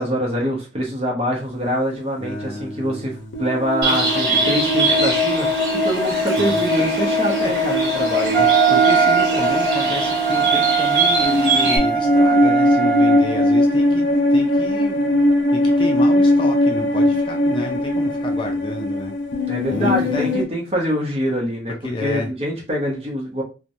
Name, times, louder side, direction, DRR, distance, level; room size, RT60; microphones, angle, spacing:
voice 1, 0.0-8.5 19.5-21.7 22.0-23.4, equal, 35° right, 0 dB, 0.8 m, -24 dB
voice 2, 2.2-3.4 4.8-5.0 6.4-6.6 7.4-7.5 8.7-15.0 15.5-19.2 19.7-20.3 21.7-22.3, left 2 dB, 30° left, 2 dB, 0.4 m, -29 dB
sound 1, 3.3-20.4, left 1 dB, 85° left, 0.5 m, -20 dB
Bird, 3.8-11.8, right 3 dB, 75° right, 0.9 m, -24 dB
Wind instrument woodwind instrument, 8.3-13.6, right 9 dB, ahead, 0.8 m, -20 dB
3.0 x 2.1 x 2.5 m, 0.32 s
head